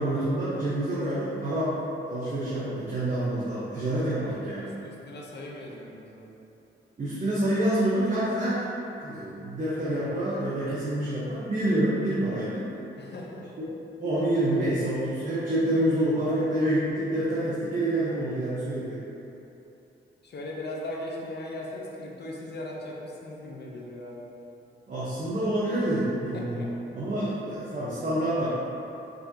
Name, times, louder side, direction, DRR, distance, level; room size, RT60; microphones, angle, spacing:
voice 1, 0.0-1.8 2.0-4.7 7.0-8.6 9.0-12.7 13.6-13.7 14.0-19.0 24.9-26.6 26.9-28.5, right 1 dB, 40° right, -10 dB, 1.1 m, -27 dB
voice 2, 4.6-6.3 13.0-13.5 20.2-24.3 26.3-26.7, left 1 dB, 60° left, -2 dB, 0.8 m, -38 dB
5.3 x 3.5 x 2.9 m, 2.9 s
cardioid pair, 70°, 20 cm